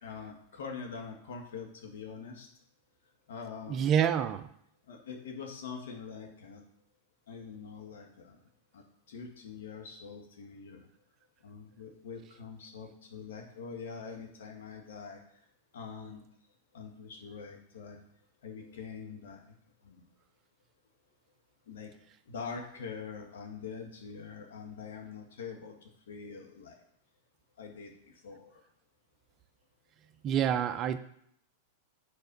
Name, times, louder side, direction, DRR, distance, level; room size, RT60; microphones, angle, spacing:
voice 1, 0.0-2.5 3.3-3.8 4.9-6.6 7.3-8.4 8.7-8.8 9.1-10.9 11.4-15.2 15.7-16.2 16.7-18.0 18.4-19.4 19.8-20.0 21.7-21.9 22.3-26.8 27.6-28.6, left 5 dB, 80° left, 2 dB, 1.7 m, -44 dB
voice 2, 3.7-4.5 30.2-31.0, right 9 dB, 35° right, 11 dB, 0.5 m, -27 dB
7.4 x 4.5 x 5.5 m, 0.69 s
hypercardioid pair, 125°, 0 cm